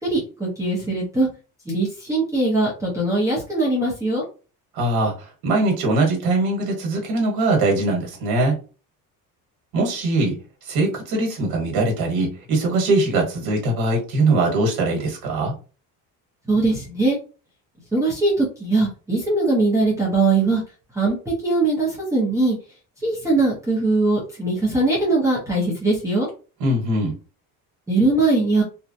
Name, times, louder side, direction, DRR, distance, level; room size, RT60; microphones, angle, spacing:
voice 1, 0.0-1.3 1.7-4.2 16.5-17.2 17.9-20.6 20.9-22.6 23.0-26.3 27.9-28.6, right 2 dB, 10° right, -6 dB, 0.8 m, -21 dB
voice 2, 4.7-8.6 9.7-15.5 26.6-27.2, right 2 dB, 80° right, 0 dB, 1.2 m, -21 dB
2.9 x 2.3 x 2.6 m, 0.35 s
cardioid pair, 155°, 37 cm